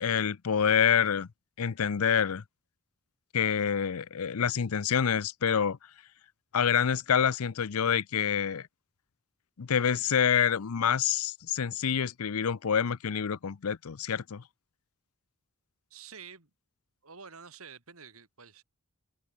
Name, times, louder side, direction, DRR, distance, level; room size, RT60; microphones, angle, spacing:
voice 1, 0.0-1.3 1.6-2.4 3.3-5.8 6.5-8.7 9.6-14.4, left 7 dB, 80° left, 0.6 m, -27 dB
voice 2, 15.9-16.5 17.0-18.6, right 6 dB, 75° right, 3.6 m, -49 dB
head